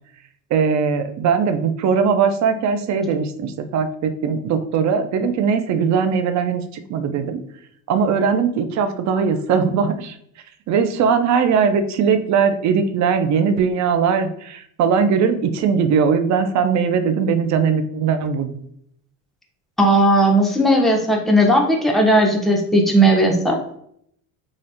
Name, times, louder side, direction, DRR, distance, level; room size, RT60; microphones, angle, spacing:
voice 1, 0.5-7.4 7.9-10.2 10.7-18.5, right 6 dB, 40° right, 9 dB, 0.4 m, -20 dB
voice 2, 19.8-23.6, right 1 dB, ahead, 0 dB, 0.7 m, -16 dB
3.3 x 2.4 x 2.6 m, 0.69 s
hypercardioid pair, 60°, 48 cm